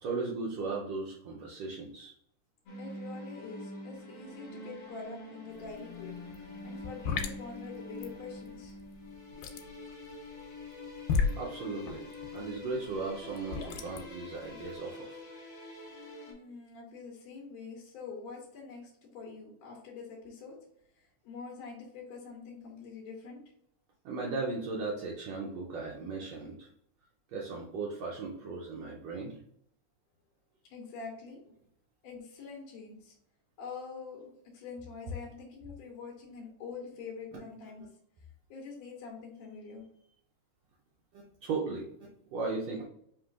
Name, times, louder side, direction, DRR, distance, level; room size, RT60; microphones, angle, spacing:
voice 1, 0.0-2.1 11.3-15.2 24.0-26.7 27.3-29.4 41.1-42.8, right 4 dB, 80° right, -2 dB, 1.5 m, -37 dB
sound 1, 2.7-16.3, left 2 dB, 50° left, 1.7 m, -45 dB
voice 2, 2.8-8.8 16.3-20.6 21.0-23.4 30.7-31.4 32.0-33.2 33.6-37.9 38.5-39.9, left 4 dB, 70° left, -2 dB, 1.8 m, -45 dB
sound 2, 5.5-5.8 6.0-14.8, left 5 dB, 90° left, 2.2 m, -35 dB
5.3 x 3.0 x 2.4 m, 0.69 s
omnidirectional pair, 3.7 m